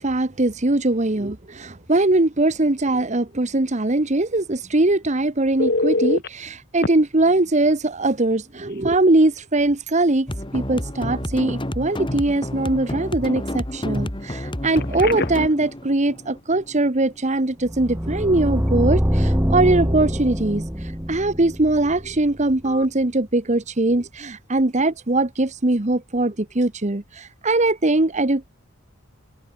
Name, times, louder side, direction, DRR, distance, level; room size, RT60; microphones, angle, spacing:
voice 1, 0.0-28.5, right 2 dB, 35° right, 1.2 m, -21 dB
Telephone, 5.6-6.3 6.8-6.9 8.7-8.8 9.2-9.4 14.7-15.5 22.7-22.9, left 3 dB, 50° left, 1.8 m, -24 dB
sound 1, 10.3-17.3, left 1 dB, 25° left, 2.4 m, -30 dB
sound 2, 17.6-22.6, equal, 10° right, 3.9 m, -24 dB
head